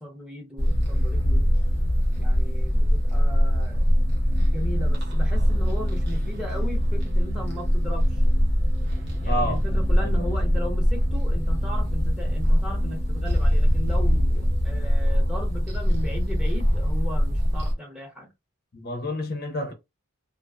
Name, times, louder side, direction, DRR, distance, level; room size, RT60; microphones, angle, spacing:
voice 1, 0.0-1.5 2.2-3.8 4.4-8.2 9.2-18.3, left 1 dB, 5° right, 0.7 m, -37 dB
sound 1, 0.6-17.7, equal, 55° right, 0.8 m, -22 dB
voice 2, 9.3-9.6 10.0-10.3 18.7-19.7, left 1 dB, 45° left, 0.5 m, -29 dB
2.4 x 2.3 x 2.3 m
head